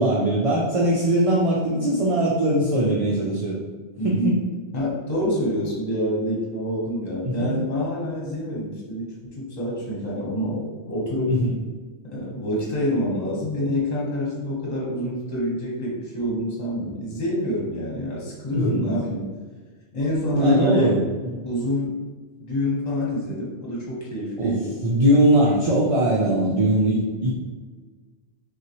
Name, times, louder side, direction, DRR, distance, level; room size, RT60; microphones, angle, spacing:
voice 1, 0.0-3.6 4.0-4.4 7.2-7.5 11.3-11.5 18.5-18.8 20.4-21.3 24.4-24.5 24.8-27.3, right 1 dB, 45° right, -4 dB, 0.5 m, -21 dB
voice 2, 4.0-4.4 4.7-11.3 12.0-19.3 19.9-21.0 21.4-22.0 22.4-24.7, left 1 dB, 40° left, -5 dB, 1.2 m, -26 dB
5.6 x 2.4 x 3.0 m, 1.4 s
omnidirectional pair, 1.2 m